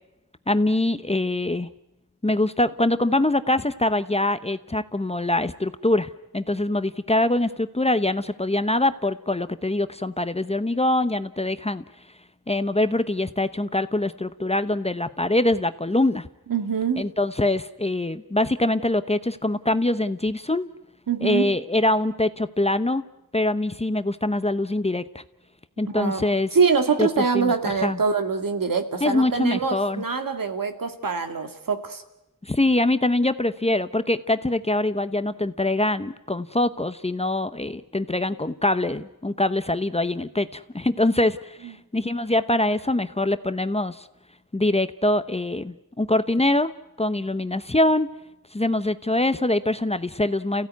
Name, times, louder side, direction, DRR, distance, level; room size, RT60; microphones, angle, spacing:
voice 1, 0.5-1.7 2.2-11.8 12.5-16.3 17.0-20.7 21.2-23.0 23.3-25.2 25.8-26.5 27.0-28.0 29.0-30.0 32.4-44.1 44.5-48.1 48.5-50.7, left 1 dB, 15° left, 12 dB, 0.9 m, -24 dB
voice 2, 16.5-17.1 21.1-21.5 25.9-32.0 41.6-41.7, right 5 dB, 65° right, 7 dB, 2.2 m, -24 dB
29.0 x 16.0 x 9.5 m, 0.95 s
cardioid pair, 65°, 36 cm